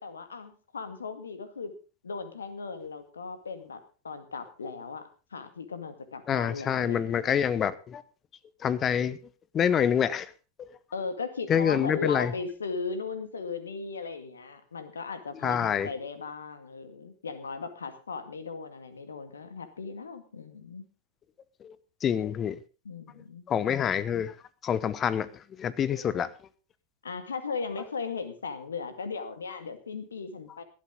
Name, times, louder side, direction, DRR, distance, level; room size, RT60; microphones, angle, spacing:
voice 1, 0.0-1.7 2.0-7.5 10.9-20.8 22.8-23.4 26.1-26.2 27.0-30.6, left 4 dB, 70° left, 2.1 m, -37 dB
voice 2, 6.3-8.0 8.6-9.2 9.5-10.3 11.5-12.3 15.4-15.9 21.6-21.8 22.0-22.6 23.5-24.3 24.6-26.3, left 8 dB, 25° left, 0.9 m, -26 dB
18.0 x 12.5 x 3.8 m
figure-of-eight pair, 90°, 0 cm